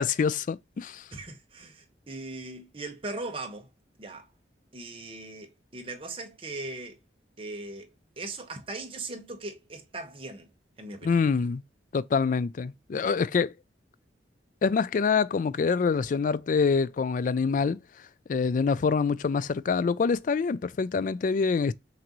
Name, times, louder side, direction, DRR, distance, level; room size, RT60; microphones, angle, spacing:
voice 1, 0.0-1.0 11.0-11.6 11.9-13.5 14.6-17.8 18.3-21.7, left 5 dB, 45° left, 0.3 m, -25 dB
voice 2, 1.1-3.7 4.0-4.3 4.7-7.0 7.4-7.9 8.2-10.5 10.8-11.2, right 2 dB, 30° right, 1.0 m, -39 dB
5.9 x 2.6 x 2.9 m
head